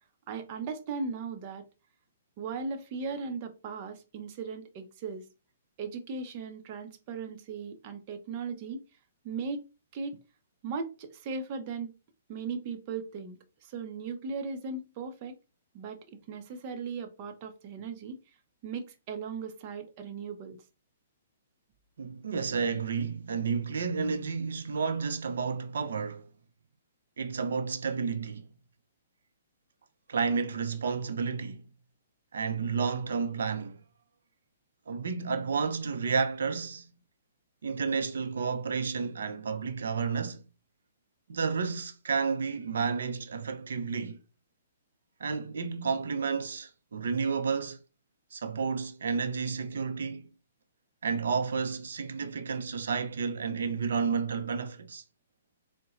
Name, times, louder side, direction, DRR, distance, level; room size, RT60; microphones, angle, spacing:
voice 1, 0.3-1.6 2.4-5.2 5.8-8.8 9.2-9.6 9.9-10.2 10.6-11.9 12.3-13.4 13.6-15.3 15.7-18.2 18.6-20.6, right 5 dB, 40° right, 0.7 m, -37 dB
voice 2, 22.0-26.2 27.2-28.5 30.1-31.6 32.3-33.8 34.9-36.9 37.6-40.4 41.3-44.2 45.2-47.8 48.3-50.3 51.0-55.0, right 5 dB, 75° right, 0.6 m, -31 dB
4.0 x 2.2 x 2.5 m
hypercardioid pair, 135°, 0 cm